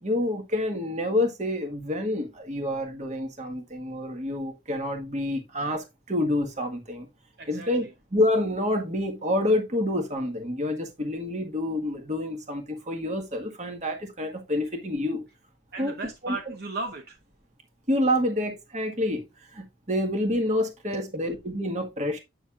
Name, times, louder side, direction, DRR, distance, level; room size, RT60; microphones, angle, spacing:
voice 1, 0.0-7.1 7.5-7.8 8.1-15.2 15.8-15.9 16.2-16.4 17.9-19.3 19.5-22.2, left 1 dB, 40° right, 1.8 m, -28 dB
voice 2, 7.4-7.9 15.7-17.2 20.9-21.1, right 2 dB, 55° right, 0.9 m, -36 dB
8.5 x 6.8 x 2.5 m
head